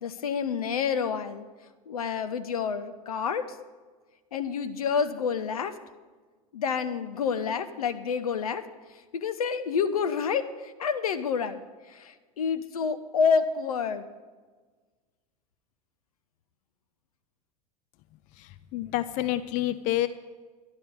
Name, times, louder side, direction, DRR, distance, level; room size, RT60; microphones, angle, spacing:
voice 1, 0.0-1.4 1.9-3.5 4.3-5.8 6.5-8.7 9.1-11.6 11.9-14.1, left 6 dB, 70° left, 10 dB, 0.8 m, -28 dB
voice 2, 18.7-20.1, left 14 dB, 40° left, 13 dB, 0.5 m, -27 dB
12.0 x 11.0 x 5.4 m, 1.4 s
figure-of-eight pair, 80°, 19 cm